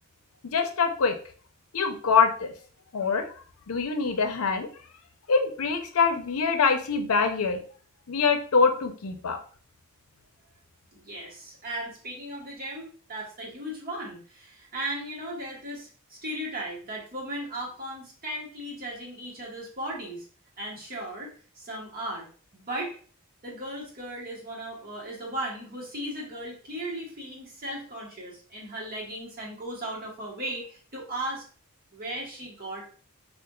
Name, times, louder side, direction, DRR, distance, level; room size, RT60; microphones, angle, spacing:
voice 1, 0.4-1.1 1.7-2.5 2.9-3.3 3.7-4.7 5.3-7.6 8.1-9.4, left 5 dB, 70° left, 6 dB, 0.6 m, -24 dB
voice 2, 10.9-20.3 20.6-21.3 21.6-22.3 22.5-23.0 23.4-31.4 31.9-32.8, right 1 dB, 45° right, -3 dB, 1.2 m, -36 dB
5.0 x 2.4 x 2.3 m, 0.42 s
head